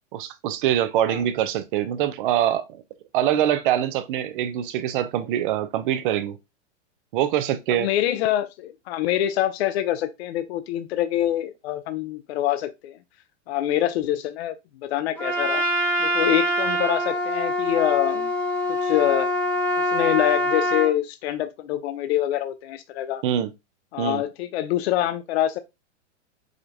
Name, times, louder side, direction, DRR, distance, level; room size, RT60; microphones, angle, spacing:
voice 1, 0.1-2.8 3.1-6.4 7.1-7.9 23.2-23.5 24.0-24.2, right 11 dB, 45° right, 0.5 m, -24 dB
voice 2, 7.7-13.0 13.5-15.6 16.0-18.3 18.7-19.3 19.8-23.2 23.9-25.6, left 12 dB, 60° left, 0.5 m, -25 dB
Trumpet, 15.2-20.9, left 1 dB, 5° left, 0.5 m, -24 dB
4.9 x 2.2 x 2.6 m
hypercardioid pair, 135°, 36 cm